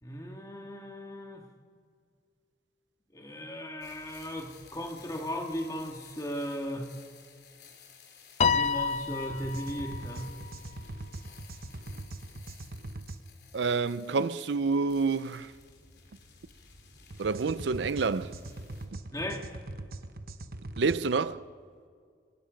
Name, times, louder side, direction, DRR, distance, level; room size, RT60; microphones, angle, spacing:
voice 1, 0.0-1.5 3.1-6.9 8.5-10.4 19.1-19.4, equal, 20° left, 2.1 m, -37 dB
sound 1, 3.8-18.9, left 6 dB, 70° left, 3.4 m, -56 dB
Piano, 8.4-10.9, left 5 dB, 40° left, 0.5 m, -29 dB
sound 2, 9.3-13.2 17.1-21.0, right 2 dB, 55° right, 1.1 m, -42 dB
voice 2, 13.5-15.5 17.2-18.4 20.8-21.4, right 4 dB, 85° right, 0.6 m, -28 dB
26.5 x 23.5 x 5.3 m
head